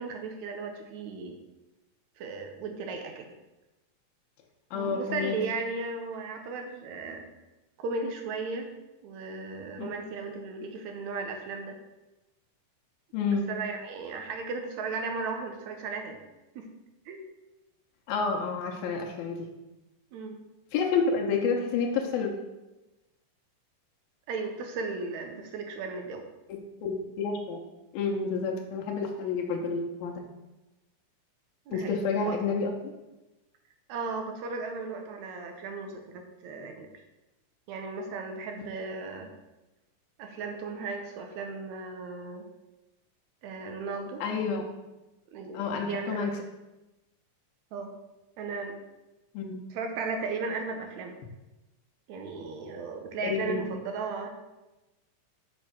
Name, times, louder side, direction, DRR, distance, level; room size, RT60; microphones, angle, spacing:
voice 1, 0.0-1.4 2.2-3.3 4.7-7.2 7.8-8.7 9.0-11.8 13.3-16.2 16.6-16.7 17.1-17.2 20.1-20.4 24.3-26.2 31.7-32.0 32.2-32.5 33.9-36.9 37.7-39.3 40.2-42.5 43.4-44.2 45.3-46.2 47.7-47.9 48.4-48.8 49.7-51.2 52.1-54.3, right 4 dB, 70° right, 4 dB, 1.8 m, -36 dB
voice 2, 4.7-5.4 9.8-9.9 13.1-13.5 18.1-19.5 20.7-22.3 26.5-27.6 27.9-30.2 31.7-32.9 44.2-44.6 45.5-46.3 49.3-49.6 53.2-53.6, left 5 dB, 85° left, 1 dB, 2.7 m, -29 dB
6.6 x 5.3 x 6.0 m, 1.0 s
omnidirectional pair, 4.1 m